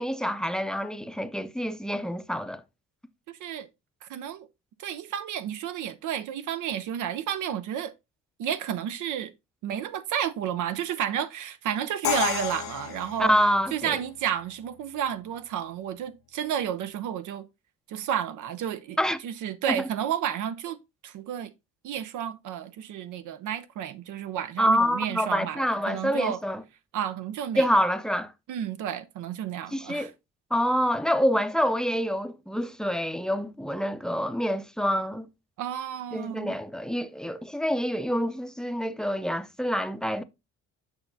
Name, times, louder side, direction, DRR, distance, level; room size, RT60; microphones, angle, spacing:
voice 1, 0.0-2.6 13.2-14.0 19.0-19.2 19.7-19.9 24.6-26.6 27.6-28.3 29.7-30.1 30.5-35.3 36.1-40.2, equal, ahead, 0.5 m, -26 dB
voice 2, 3.3-3.7 4.0-4.5 4.8-7.9 8.4-9.3 9.6-13.4 13.7-17.5 17.9-19.0 19.2-20.8 21.0-21.5 21.8-25.6 25.9-26.4 26.9-27.7 28.5-30.1 35.6-36.5, right 9 dB, 80° right, 0.6 m, -31 dB
Crash cymbal, 12.0-14.0, left 15 dB, 70° left, 0.4 m, -31 dB
8.0 x 5.8 x 2.6 m
cardioid pair, 90°, 30 cm